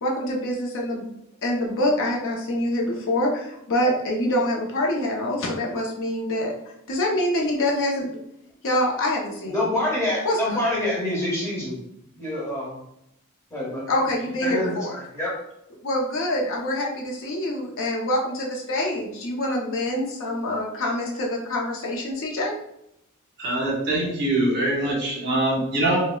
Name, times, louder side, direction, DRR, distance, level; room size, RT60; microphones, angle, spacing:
voice 1, 0.0-1.1 1.4-6.5 6.9-8.1 8.6-9.6 10.2-10.7 13.9-14.9 15.8-22.5, left 1 dB, 60° left, -1 dB, 0.6 m, -25 dB
voice 2, 9.5-11.8 12.1-12.8 13.5-13.8 14.4-15.3, left 1 dB, 15° left, -5 dB, 1.2 m, -26 dB
voice 3, 23.4-26.0, right 1 dB, 50° right, -3 dB, 1.0 m, -23 dB
4.7 x 2.2 x 2.2 m, 0.81 s
head